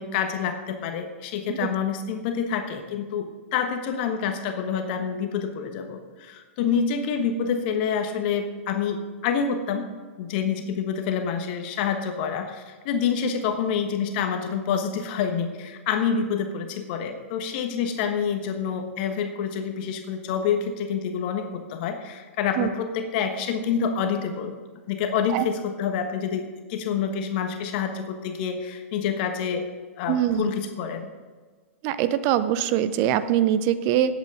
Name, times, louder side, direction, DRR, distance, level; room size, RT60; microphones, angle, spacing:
voice 1, 0.0-9.8 10.2-24.5 24.9-29.7 30.0-31.1, left 7 dB, 45° left, 6 dB, 1.2 m, -27 dB
voice 2, 30.1-30.5 31.8-34.2, right 11 dB, 40° right, 13 dB, 0.6 m, -23 dB
18.0 x 8.2 x 3.8 m, 1.5 s
figure-of-eight pair, 105°, 7 cm